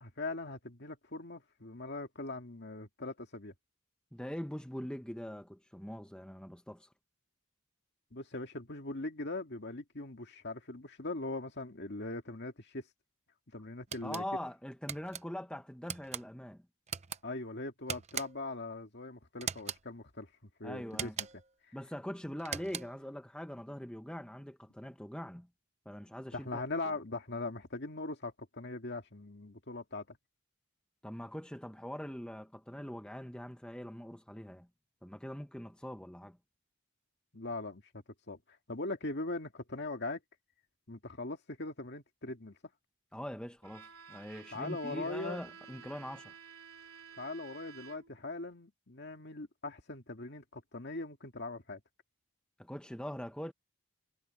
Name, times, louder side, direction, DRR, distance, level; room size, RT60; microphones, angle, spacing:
voice 1, 0.0-3.5 8.1-12.8 13.5-14.2 17.2-20.3 20.6-21.1 26.3-30.2 37.3-37.8 38.3-38.4 38.7-40.2 40.9-42.6 44.5-45.4 47.2-51.8, left 2 dB, 50° left, 2.1 m, -40 dB
voice 2, 4.1-6.9 14.0-16.6 20.6-21.1 21.7-25.5 25.8-26.6 31.0-34.7 35.0-36.4 43.1-46.3 52.6-53.5, equal, 5° left, 1.0 m, -42 dB
sound 1, 13.9-14.3 14.9-15.2 15.9-16.2 16.9-17.2 17.9-18.5 19.4-19.8 20.9-21.5 22.4-23.0, right 8 dB, 30° right, 0.8 m, -40 dB
Bowed string instrument, 43.6-48.3, right 6 dB, 80° right, 3.6 m, -53 dB
head